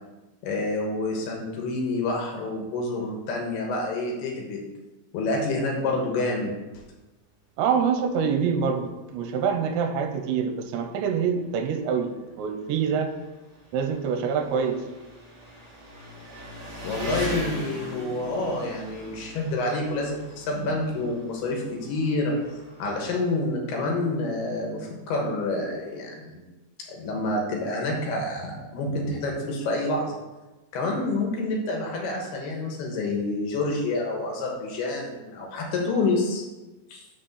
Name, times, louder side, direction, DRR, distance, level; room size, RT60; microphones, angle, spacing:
voice 1, 0.4-4.6 5.1-6.5 16.8-22.3 22.8-26.5 26.9-30.2 30.7-36.4 36.9-37.0, left 2 dB, 70° left, 0 dB, 3.0 m, -28 dB
voice 2, 7.6-13.1 13.7-14.8, right 6 dB, 80° right, 6 dB, 2.9 m, -26 dB
Engine, 9.0-9.1 10.1-10.2 10.4-23.1, equal, 40° right, 3.0 m, -40 dB
6.6 x 5.1 x 6.5 m, 1.1 s
omnidirectional pair, 5.2 m